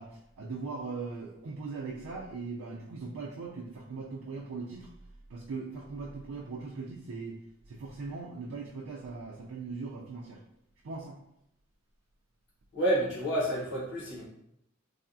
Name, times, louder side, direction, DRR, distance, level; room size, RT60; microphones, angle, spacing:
voice 1, 0.0-4.9 5.3-7.3 7.7-10.4 10.8-11.2, right 4 dB, 75° right, -2 dB, 0.4 m, -40 dB
voice 2, 12.7-14.3, right 1 dB, 60° left, -5 dB, 1.0 m, -29 dB
3.3 x 2.2 x 2.5 m, 0.77 s
head